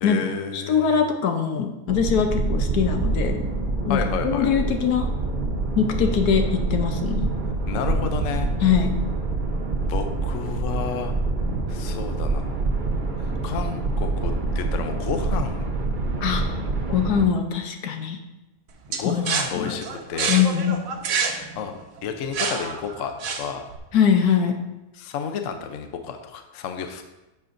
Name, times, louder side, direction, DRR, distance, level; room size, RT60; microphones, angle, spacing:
voice 1, 0.0-1.0 3.9-4.5 7.7-8.5 9.9-11.1 11.7-12.5 13.2-15.6 18.9-20.4 21.6-21.7 22.0-23.7 25.0-27.1, left 7 dB, 65° left, 6 dB, 1.0 m, -31 dB
voice 2, 0.5-3.5 3.8-5.1 5.8-7.3 8.6-8.9 16.2-16.4 16.9-18.2 19.0-19.2 19.5-19.7 20.3-20.8 23.9-24.6, left 7 dB, 80° left, 5 dB, 1.4 m, -22 dB
sound 1, 1.9-17.2, right 3 dB, 40° right, 0.8 m, -26 dB
sound 2, 18.9-23.8, right 5 dB, 70° right, 1.2 m, -28 dB
11.0 x 6.8 x 2.6 m, 1.0 s
omnidirectional pair, 1.6 m